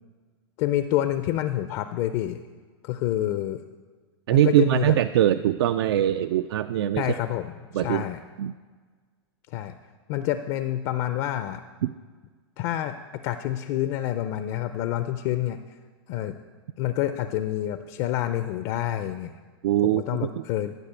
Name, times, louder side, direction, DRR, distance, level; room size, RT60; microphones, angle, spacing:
voice 1, 0.6-2.4 2.8-3.6 4.3-5.0 6.9-8.2 9.5-9.7 10.1-11.6 12.6-13.0 13.2-15.6 16.1-16.4 16.8-19.3 19.9-20.7, left 13 dB, 35° left, 10 dB, 0.4 m, -28 dB
voice 2, 4.3-7.1 7.7-8.0 8.4-8.5 11.8-11.9 19.6-20.4, right 12 dB, 70° right, 12 dB, 0.4 m, -22 dB
12.0 x 5.0 x 8.1 m, 1.5 s
supercardioid pair, 160°, 14 cm